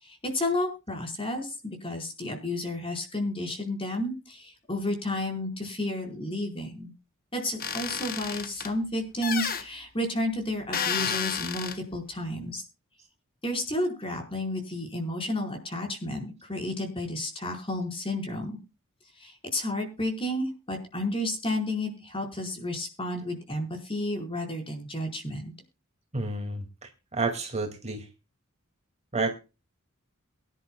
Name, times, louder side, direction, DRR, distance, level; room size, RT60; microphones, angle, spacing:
voice 1, 0.0-6.9 7.3-12.6 13.4-18.6 19.2-25.5, left 1 dB, 25° left, 3 dB, 4.7 m, -31 dB
sound 1, 7.6-8.7 9.2-9.6 10.7-11.8, left 7 dB, 45° left, 1.2 m, -31 dB
voice 2, 26.1-28.1 29.1-29.4, right 3 dB, 30° right, 4 dB, 2.3 m, -30 dB
23.0 x 10.5 x 2.3 m, 0.29 s
head